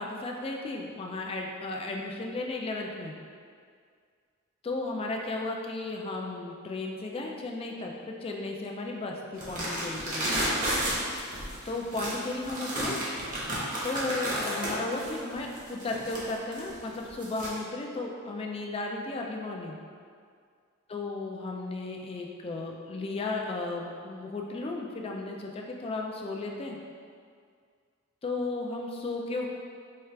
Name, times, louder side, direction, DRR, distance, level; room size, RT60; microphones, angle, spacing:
voice 1, 0.0-3.2 4.6-10.3 11.7-13.0 13.8-19.8 20.9-26.8 28.2-29.5, left 2 dB, 25° left, 0 dB, 0.3 m, -34 dB
sound 1, 9.4-17.5, right 1 dB, 40° right, 0.9 m, -32 dB
4.5 x 2.4 x 3.2 m, 2.1 s
head